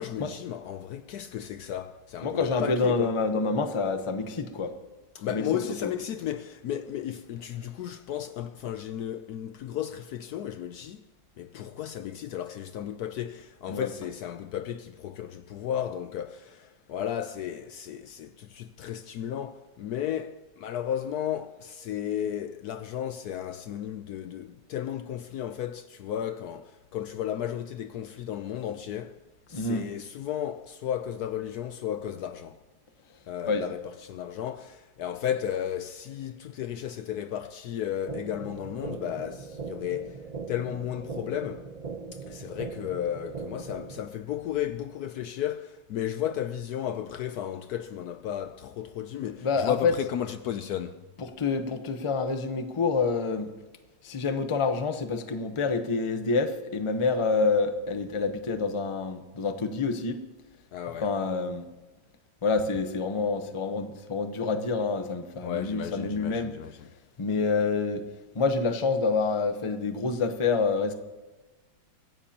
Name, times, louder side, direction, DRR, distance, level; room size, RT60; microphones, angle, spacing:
voice 1, 0.0-3.1 5.1-11.0 11.4-29.2 29.5-32.6 33.3-40.2 40.5-41.7 42.1-51.0 60.7-61.1 65.4-66.9, left 10 dB, 70° left, 1.0 m, -34 dB
voice 2, 2.2-4.7 5.3-5.4 5.8-5.9 13.7-13.9 29.5-29.8 33.4-33.6 49.4-49.9 51.2-53.5 54.0-60.2 61.0-61.6 62.4-66.5 67.2-68.0 68.3-70.9, left 4 dB, 25° left, 0.7 m, -27 dB
sound 1, 38.1-44.1, right 5 dB, 65° right, 0.4 m, -39 dB
23.5 x 15.5 x 2.9 m
omnidirectional pair, 1.9 m